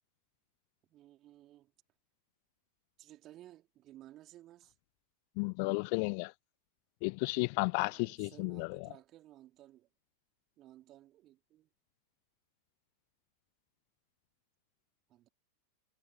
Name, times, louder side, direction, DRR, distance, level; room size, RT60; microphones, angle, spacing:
voice 1, 0.8-1.7 3.0-4.7 7.8-9.9 10.6-11.7 15.1-15.3, right 14 dB, 35° right, 3.1 m, -57 dB
voice 2, 5.4-6.3 7.0-8.9, left 36 dB, 45° left, 0.4 m, -33 dB
figure-of-eight pair, 90°, 0 cm